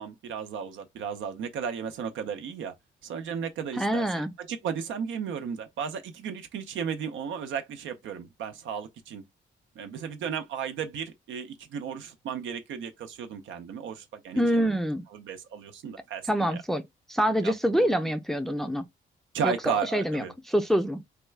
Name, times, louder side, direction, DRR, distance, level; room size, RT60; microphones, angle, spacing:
voice 1, 0.0-2.7 3.0-4.0 4.4-9.2 9.8-14.7 15.1-16.6 17.4-17.9 19.3-20.3, right 7 dB, 75° right, 0.7 m, -34 dB
voice 2, 3.8-4.3 14.4-15.0 16.3-16.8 17.1-18.9 19.4-21.0, equal, ahead, 0.5 m, -26 dB
3.5 x 2.3 x 3.2 m
cardioid pair, 90°, 20 cm